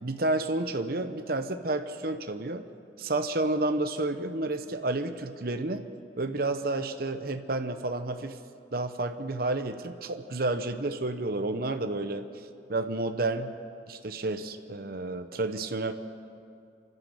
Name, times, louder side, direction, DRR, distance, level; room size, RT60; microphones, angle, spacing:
voice 1, 0.0-2.7 3.0-5.8 6.2-8.4 8.7-12.3 12.7-13.5 13.9-15.9, right 2 dB, 55° right, 8 dB, 0.9 m, -30 dB
27.5 x 12.0 x 8.0 m, 2.4 s
head